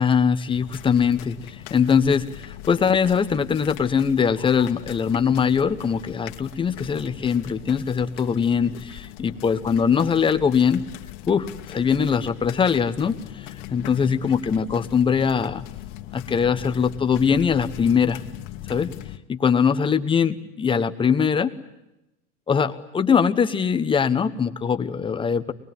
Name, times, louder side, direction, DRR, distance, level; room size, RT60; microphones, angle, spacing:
voice 1, 0.0-10.8 11.3-15.6 16.1-18.2 18.7-19.0 19.3-21.5 22.5-25.5, left 6 dB, 15° left, 9 dB, 1.1 m, -22 dB
sound 1, 0.5-19.2, left 14 dB, 70° left, 2.1 m, -40 dB
24.5 x 21.0 x 9.3 m, 0.91 s
supercardioid pair, 155°, 38 cm